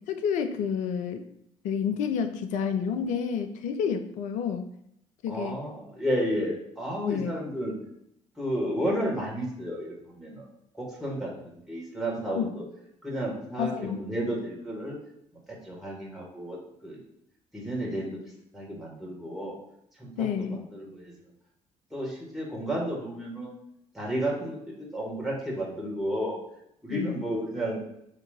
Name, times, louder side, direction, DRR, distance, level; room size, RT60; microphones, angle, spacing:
voice 1, 0.1-1.3 1.6-4.7 5.2-5.6 7.0-7.4 12.3-12.5 13.6-14.0 20.2-20.6 26.9-27.3, left 7 dB, 50° left, 8 dB, 0.4 m, -29 dB
voice 2, 5.3-7.7 8.4-10.4 10.8-12.6 13.0-15.0 15.6-16.6 16.8-17.0 17.5-18.2 18.5-19.5 20.0-21.1 21.9-23.5 23.9-26.4 26.8-27.8, equal, ahead, -5 dB, 1.6 m, -32 dB
3.6 x 2.7 x 4.3 m, 0.75 s
figure-of-eight pair, 50°, 16 cm